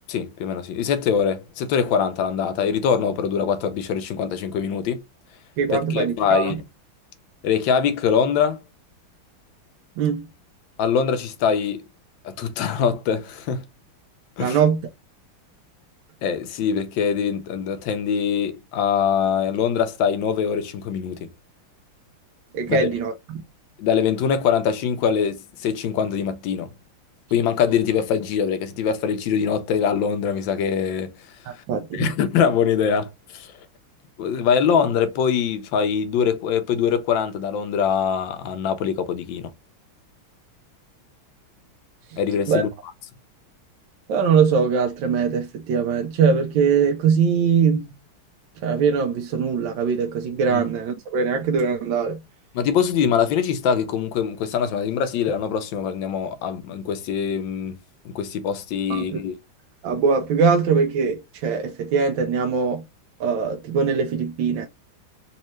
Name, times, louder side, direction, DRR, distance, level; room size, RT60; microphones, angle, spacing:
voice 1, 0.1-5.0 5.7-6.6 7.4-8.6 10.8-11.8 12.2-13.6 14.4-14.6 16.2-21.3 22.7-22.9 23.8-26.7 27.3-31.1 31.9-33.5 34.2-39.5 42.2-42.7 50.5-50.6 52.5-57.8 58.0-59.4, left 7 dB, 70° left, 1.3 m, -23 dB
voice 2, 5.6-6.5 10.0-10.3 14.4-14.8 22.5-23.1 31.7-32.1 42.5-42.6 44.1-47.9 48.6-52.2 58.9-59.2 59.8-62.8 63.2-64.7, right 6 dB, 75° right, 1.2 m, -21 dB
4.3 x 2.7 x 2.9 m
omnidirectional pair, 2.4 m